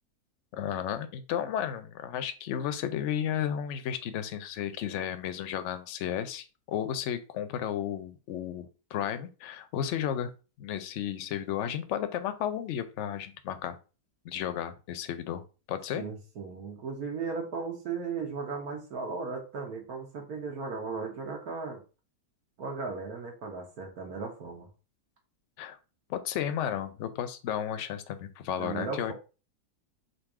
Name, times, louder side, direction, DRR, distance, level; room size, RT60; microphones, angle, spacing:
voice 1, 0.5-10.3 10.6-13.8 14.2-15.4 15.7-16.0 25.6-25.8 26.1-29.1, left 9 dB, 65° left, 10 dB, 0.8 m, -33 dB
voice 2, 15.9-21.8 22.6-24.7 28.6-29.1, right 4 dB, 70° right, 1 dB, 1.4 m, -36 dB
3.9 x 2.7 x 4.7 m, 0.33 s
omnidirectional pair, 1.7 m